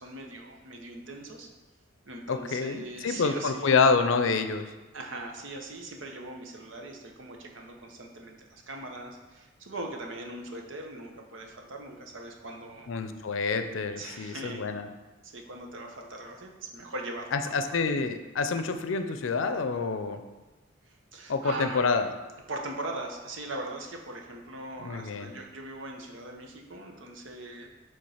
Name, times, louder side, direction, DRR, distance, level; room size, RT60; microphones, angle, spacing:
voice 1, 0.0-1.5 2.1-3.7 4.9-7.7 8.0-8.3 8.7-9.1 9.7-12.9 14.0-14.6 15.3-17.5 21.1-21.9 22.5-27.7, right 2 dB, 75° right, 2 dB, 0.9 m, -40 dB
voice 2, 2.3-4.7 12.9-14.9 17.3-20.2 21.3-22.1 24.8-25.3, left 4 dB, 85° left, 8 dB, 0.5 m, -27 dB
5.3 x 3.7 x 5.7 m, 1.2 s
head